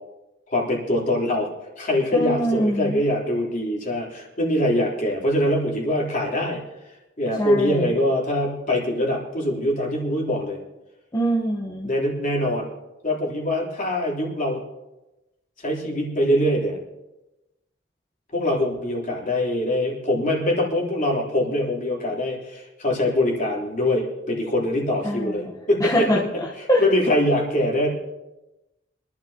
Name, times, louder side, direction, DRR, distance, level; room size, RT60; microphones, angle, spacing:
voice 1, 0.5-1.5 1.8-10.6 11.8-12.7 13.0-14.6 15.6-16.8 18.3-26.1 26.8-27.9, left 1 dB, 45° left, -3 dB, 3.6 m, -23 dB
voice 2, 2.1-3.0 7.4-8.0 11.1-11.9 25.0-25.5 25.8-26.2 26.7-26.8, equal, 20° left, -4 dB, 1.2 m, -23 dB
25.5 x 12.0 x 2.9 m, 1.0 s
head